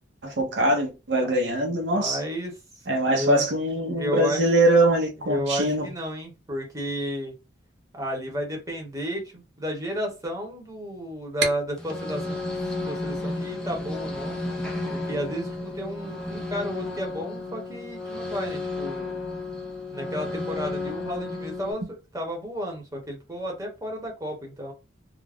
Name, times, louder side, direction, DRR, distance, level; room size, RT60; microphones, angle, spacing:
voice 1, 0.2-2.2 2.9-5.8, right 1 dB, 70° right, 0.7 m, -22 dB
voice 2, 1.9-2.5 3.0-3.4 3.9-4.4 5.2-7.3 7.9-12.4 12.9-14.4 14.9-19.2 19.9-24.7, equal, 15° right, 0.8 m, -32 dB
sound 1, 11.8-21.7, left 2 dB, 5° left, 0.3 m, -32 dB
2.4 x 2.0 x 3.3 m
head